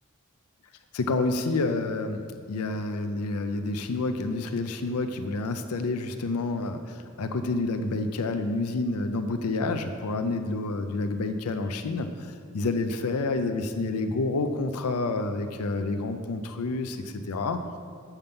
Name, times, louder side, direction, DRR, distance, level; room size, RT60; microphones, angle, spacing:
voice 1, 0.9-17.8, left 3 dB, 85° left, 7 dB, 0.5 m, -29 dB
7.2 x 6.7 x 5.3 m, 2.1 s
head